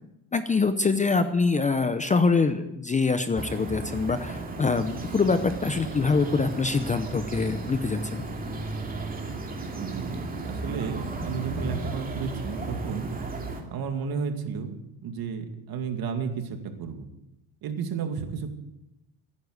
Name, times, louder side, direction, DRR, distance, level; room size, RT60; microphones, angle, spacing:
voice 1, 0.3-8.2, left 4 dB, 15° left, 11 dB, 0.7 m, -24 dB
sound 1, 3.3-13.6, right 3 dB, 20° right, 2.4 m, -34 dB
voice 2, 9.7-13.1 13.7-14.8 15.0-17.1 17.6-18.5, right 6 dB, 55° right, 6 dB, 2.3 m, -32 dB
16.0 x 10.0 x 8.0 m, 0.89 s
cardioid pair, 135°, 44 cm